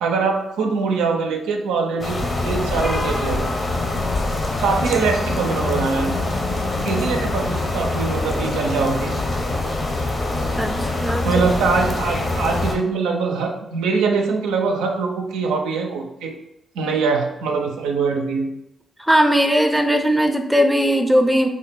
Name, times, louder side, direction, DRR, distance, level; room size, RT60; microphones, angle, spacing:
voice 1, 0.0-3.5 4.6-6.2 6.8-9.2 11.2-16.3 16.8-18.5, right 4 dB, 90° right, 2 dB, 0.4 m, -23 dB
sound 1, 2.0-12.7, left 2 dB, 45° left, 0.9 m, -24 dB
voice 2, 19.1-21.5, equal, ahead, 4 dB, 0.5 m, -17 dB
3.6 x 2.1 x 4.0 m, 0.88 s
supercardioid pair, 45°, 0 cm